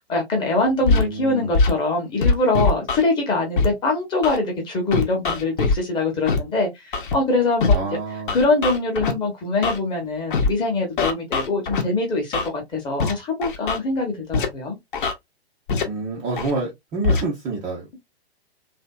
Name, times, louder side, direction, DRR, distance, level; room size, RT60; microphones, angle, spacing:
voice 1, 0.0-7.8 8.3-14.8, left 2 dB, 15° left, 0.9 m, -23 dB
voice 2, 0.8-1.5 7.7-8.3 15.8-18.0, right 3 dB, 15° right, 0.5 m, -28 dB
Scratching (performance technique), 0.9-1.0 1.5-1.7 2.2-3.0 3.6-3.7 4.2-4.4 4.9-5.8 6.3-6.4 6.9-7.1 7.6-7.8 8.3-9.1 9.6-9.8 10.3-10.5 11.0-11.8 12.3-12.5 13.0-13.1 13.4-13.8 14.3-14.5 14.9-15.1 15.7-15.8 16.4-16.5 17.0-17.2, left 4 dB, 50° left, 0.9 m, -21 dB
3.2 x 2.6 x 2.3 m
figure-of-eight pair, 115°, 32 cm